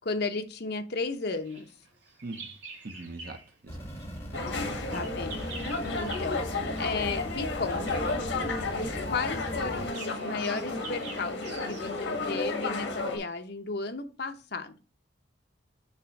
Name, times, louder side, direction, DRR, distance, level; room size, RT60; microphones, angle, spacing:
voice 1, 0.0-1.7 4.9-5.5 5.9-6.4 6.8-8.1 8.7-14.8, left 4 dB, 60° left, 0.9 m, -34 dB
Bird vocalization bird call bird song, 1.3-3.6 3.9-13.4, right 3 dB, 70° right, 1.8 m, -48 dB
voice 2, 2.8-4.1 4.3-4.7, right 2 dB, 50° right, 0.8 m, -43 dB
sound 1, 3.7-9.9, equal, 15° left, 2.3 m, -39 dB
sound 2, 4.3-13.2, left 3 dB, 75° left, 1.6 m, -32 dB
6.9 x 3.0 x 6.0 m
head